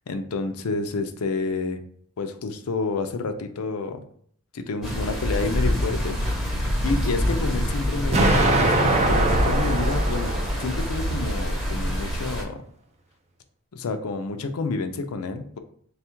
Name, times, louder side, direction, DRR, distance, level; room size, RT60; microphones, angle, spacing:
voice 1, 0.1-1.8 2.2-4.0 4.5-6.2 6.8-12.6 13.7-15.6, left 3 dB, 75° left, 8 dB, 0.5 m, -29 dB
sound 1, 4.8-12.4, equal, ahead, 0.8 m, -25 dB
Explosion, 8.1-11.1, right 2 dB, 30° right, 0.5 m, -23 dB
3.4 x 2.3 x 4.4 m, 0.62 s
head